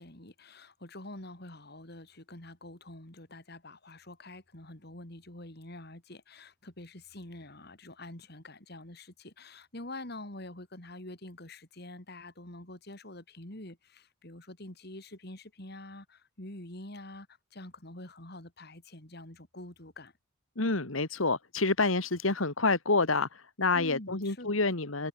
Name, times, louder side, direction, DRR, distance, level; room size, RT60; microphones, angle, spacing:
voice 1, 0.0-20.1 23.7-24.5, left 1 dB, 50° left, 3.9 m, -46 dB
voice 2, 20.6-25.1, left 3 dB, 90° left, 2.3 m, -28 dB
head